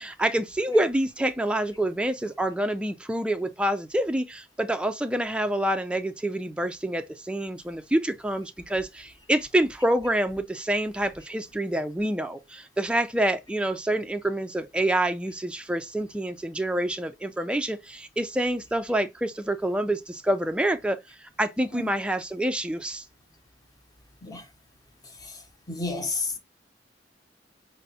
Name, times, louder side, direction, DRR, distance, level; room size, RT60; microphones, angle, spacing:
voice 1, 0.0-21.0 21.4-23.0, right 1 dB, 5° right, 0.3 m, -27 dB
voice 2, 25.7-26.4, left 3 dB, 20° left, 0.8 m, -31 dB
5.4 x 2.0 x 2.7 m
head